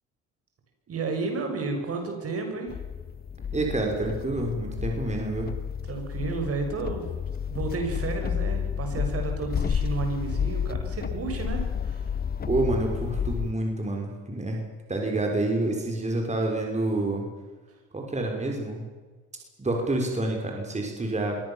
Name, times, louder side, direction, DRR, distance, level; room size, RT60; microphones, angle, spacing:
voice 1, 0.9-2.7 5.8-7.1 7.5-12.0, right 4 dB, 50° right, 4 dB, 7.0 m, -32 dB
sound 1, 2.7-13.5, left 7 dB, 30° left, 0.8 m, -31 dB
voice 2, 3.5-5.5 12.5-14.6 14.9-17.3 17.9-18.8 19.6-21.4, right 2 dB, 20° right, 1 dB, 5.9 m, -28 dB
24.0 x 18.5 x 7.4 m, 1.4 s
supercardioid pair, 80°, 31 cm